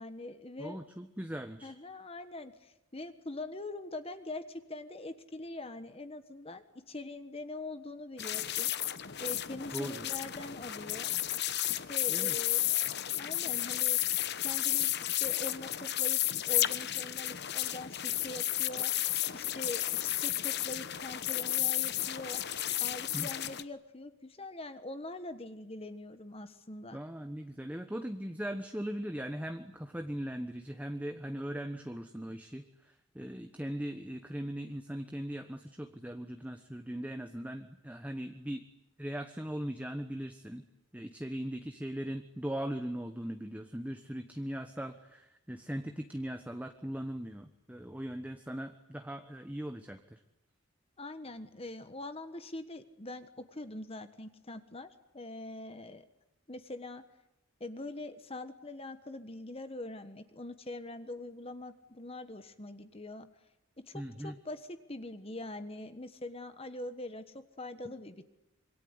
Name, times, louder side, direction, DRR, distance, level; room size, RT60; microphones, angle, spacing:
voice 1, 0.0-0.8 1.6-11.1 11.7-14.0 14.4-18.9 19.3-22.4 22.8-27.0 51.0-54.9 55.1-56.0 56.5-57.0 57.6-63.3 63.9-68.2, left 2 dB, 30° left, 10 dB, 1.3 m, -43 dB
voice 2, 0.6-1.7 9.5-10.1 12.1-12.4 23.1-23.3 26.9-38.6 39.0-40.6 40.9-50.2 63.9-64.4 67.8-67.9, equal, 5° right, 6 dB, 1.1 m, -39 dB
sound 1, 8.2-23.6, left 13 dB, 50° left, 1.0 m, -32 dB
26.0 x 23.5 x 9.7 m, 0.85 s
head